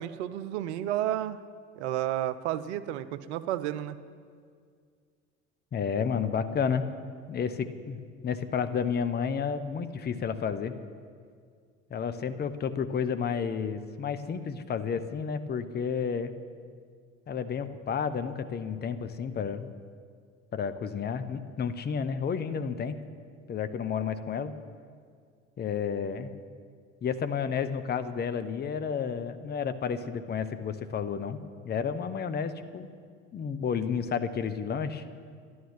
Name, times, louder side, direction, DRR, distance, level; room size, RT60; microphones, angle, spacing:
voice 1, 0.0-1.4 1.8-4.0, right 12 dB, 65° right, 13 dB, 0.7 m, -31 dB
voice 2, 5.7-6.9 7.3-10.7 11.9-16.3 17.3-19.7 20.5-23.0 23.5-24.5 25.6-26.3 27.0-31.4 31.6-32.9 33.3-35.0, left 6 dB, 25° left, 10 dB, 0.8 m, -31 dB
11.5 x 11.0 x 7.3 m, 2.1 s
figure-of-eight pair, 60°, 36 cm